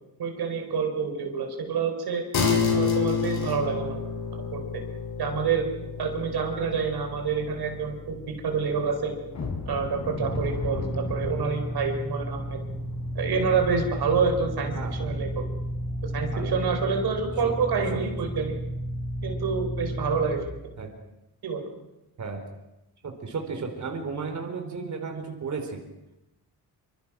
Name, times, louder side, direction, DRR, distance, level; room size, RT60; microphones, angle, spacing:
voice 1, 0.2-2.2 2.7-4.0 4.3-4.8 5.2-5.7 6.0-9.1 9.7-12.6 13.2-15.3 16.0-18.5 19.2-20.5 21.4-21.6, right 5 dB, 75° right, 4 dB, 4.1 m, -27 dB
sound 1, 2.3-12.1, left 5 dB, 85° left, 5.9 m, -31 dB
sound 2, 9.3-16.1 16.4-16.6 17.0-17.2 17.6-17.8, left 4 dB, 45° left, 4.2 m, -38 dB
sound 3, 10.2-20.4, equal, 10° right, 7.0 m, -32 dB
voice 2, 14.8-15.2 16.3-16.6 17.4-17.5 20.8-20.9 22.2-22.4 23.0-25.8, right 4 dB, 50° right, 4 dB, 3.8 m, -34 dB
27.0 x 25.0 x 6.1 m, 0.95 s
wide cardioid pair, 145°, 38 cm